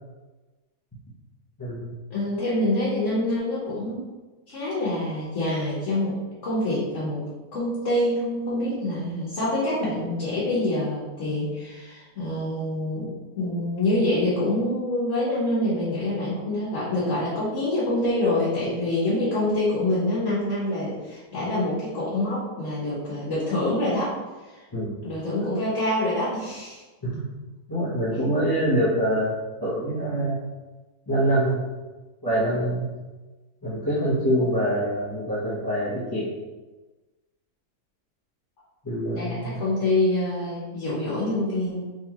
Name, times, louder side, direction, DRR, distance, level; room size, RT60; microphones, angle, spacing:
voice 1, 1.6-2.0 24.7-24.9 27.0-27.3 27.7-29.3 29.6-30.4 31.1-31.7 32.2-32.9 33.6-36.2 38.8-39.6, right 1 dB, 20° left, -10 dB, 0.7 m, -25 dB
voice 2, 2.1-4.1 4.5-6.1 6.4-7.2 7.5-24.2 24.4-24.6 25.0-26.8 28.1-28.2 39.1-41.9, left 1 dB, 55° left, -8 dB, 1.3 m, -26 dB
3.7 x 3.1 x 2.9 m, 1.2 s
omnidirectional pair, 1.6 m